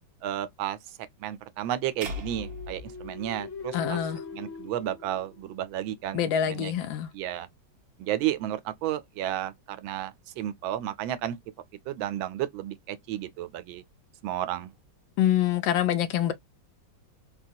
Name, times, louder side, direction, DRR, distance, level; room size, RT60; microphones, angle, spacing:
voice 1, 0.2-0.8 1.2-4.0 4.3-6.2 6.5-6.8 7.1-7.5 8.0-11.4 11.9-13.8 14.2-14.7, right 12 dB, 80° right, 1.3 m, -32 dB
sound 1, 2.0-4.3, left 1 dB, 55° right, 0.6 m, -40 dB
sound 2, 2.2-6.0, left 5 dB, 50° left, 1.0 m, -41 dB
voice 2, 3.7-4.2 6.1-7.1 15.2-16.3, left 10 dB, 75° left, 1.3 m, -25 dB
3.9 x 2.3 x 2.6 m
omnidirectional pair, 2.1 m